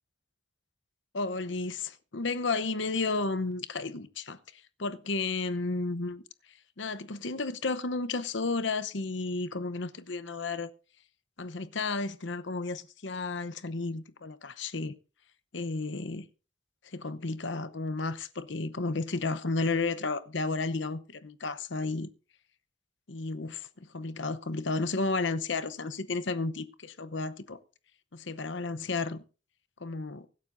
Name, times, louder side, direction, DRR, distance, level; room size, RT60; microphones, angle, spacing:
voice 1, 1.1-6.2 6.8-10.7 11.4-14.9 15.5-16.3 16.8-22.1 23.1-27.6 28.1-29.2 29.8-30.3, left 3 dB, 65° left, 0.9 m, -32 dB
24.0 x 9.6 x 2.7 m
head